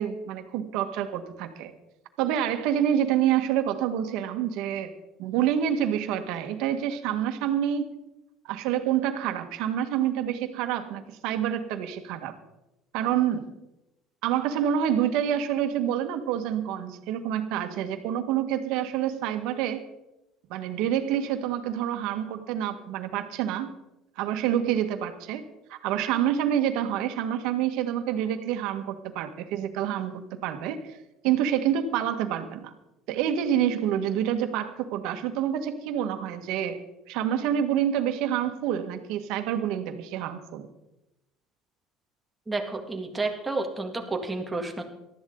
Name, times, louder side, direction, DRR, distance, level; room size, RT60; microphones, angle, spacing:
voice 1, 0.0-1.7 2.2-4.9 5.2-8.0 8.4-12.3 12.9-13.5 14.2-19.8 20.5-23.7 24.2-25.4 25.7-30.8 31.2-32.7 33.1-36.8 37.1-40.7, right 10 dB, 75° right, 7 dB, 1.7 m, -27 dB
voice 2, 42.5-44.8, right 3 dB, 15° right, 3 dB, 2.1 m, -30 dB
19.0 x 13.0 x 3.9 m, 0.93 s
cardioid pair, 135°, 0 cm